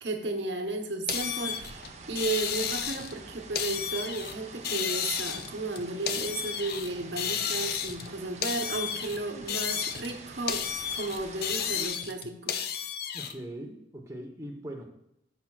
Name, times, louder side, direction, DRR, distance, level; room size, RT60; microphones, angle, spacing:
voice 1, 0.0-12.6, right 3 dB, 70° right, 4 dB, 1.1 m, -34 dB
sound 1, 1.1-3.2 3.5-4.3 4.6-6.9 7.2-8.1 8.4-10.2 10.5-13.3, left 8 dB, 50° left, 0.5 m, -32 dB
sound 2, 1.1-11.9, right 3 dB, 35° right, 0.7 m, -47 dB
voice 2, 13.1-14.9, right 1 dB, 15° right, 1 dB, 1.0 m, -41 dB
13.0 x 5.9 x 2.4 m, 0.82 s
head